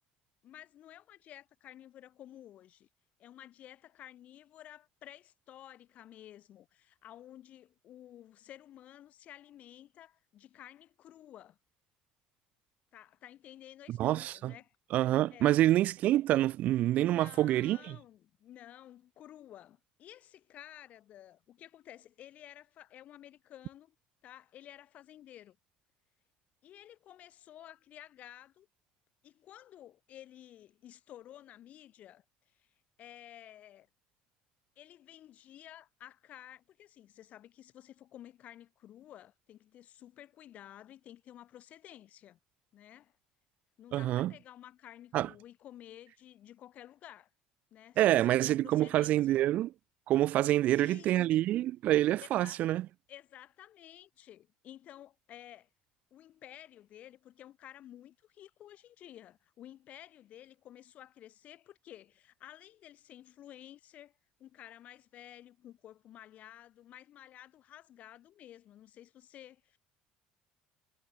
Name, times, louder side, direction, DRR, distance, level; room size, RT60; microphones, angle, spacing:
voice 1, 0.4-2.9 3.2-11.6 12.9-14.8 15.3-15.6 17.0-23.9 24.2-25.6 26.6-28.7 29.2-32.2 32.5-32.7 33.0-33.9 34.8-42.4 42.7-43.1 43.8-47.3 47.7-49.2 50.4-51.1 52.2-52.6 53.1-55.7 56.1-69.8, left 12 dB, 55° left, 3.8 m, -53 dB
voice 2, 13.9-14.5 14.9-18.0 43.9-44.3 45.1-45.3 48.0-49.7 50.1-52.9, right 14 dB, 60° right, 0.8 m, -27 dB
supercardioid pair, 100°, 3 cm